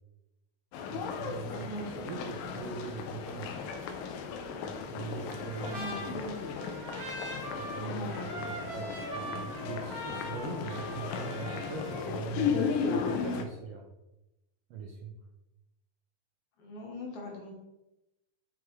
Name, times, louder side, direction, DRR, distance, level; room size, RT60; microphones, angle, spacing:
sound 1, 0.7-13.5, left 6 dB, 85° left, 2.4 m, -36 dB
voice 1, 0.9-3.5 4.6-6.1 7.6-13.9 14.7-15.2, right 5 dB, 85° right, -1 dB, 1.3 m, -41 dB
voice 2, 1.5-1.9 5.6-6.4 7.8-8.3 16.6-17.5, equal, 65° left, 0 dB, 2.5 m, -41 dB
Trumpet, 5.3-12.0, right 1 dB, 25° right, 2.7 m, -42 dB
7.7 x 5.9 x 3.2 m, 0.92 s
omnidirectional pair, 3.9 m